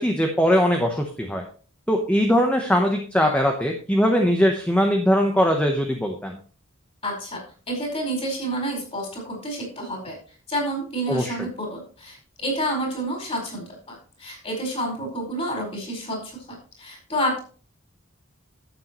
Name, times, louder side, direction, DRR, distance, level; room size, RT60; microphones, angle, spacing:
voice 1, 0.0-1.4 1.9-6.4 11.1-11.4, equal, 5° left, 2 dB, 1.0 m, -21 dB
voice 2, 7.0-7.4 7.7-10.1 10.5-17.4, right 1 dB, 30° left, 0 dB, 4.6 m, -29 dB
12.0 x 8.5 x 3.1 m, 0.40 s
head